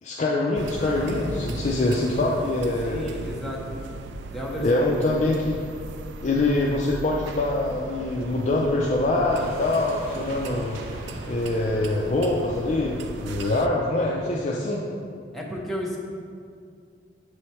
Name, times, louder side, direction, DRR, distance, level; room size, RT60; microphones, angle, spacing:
voice 1, 0.0-3.0 4.6-5.5 6.2-10.8 11.3-14.8, left 2 dB, 40° left, -3 dB, 0.4 m, -24 dB
sound 1, 0.5-13.7, right 3 dB, 85° right, 0.3 m, -38 dB
voice 2, 2.8-3.8 4.3-5.0 15.3-16.0, equal, ahead, -4 dB, 0.7 m, -32 dB
sound 2, 9.3-13.6, equal, 55° right, 1.1 m, -43 dB
6.9 x 3.2 x 4.2 m, 2.3 s
head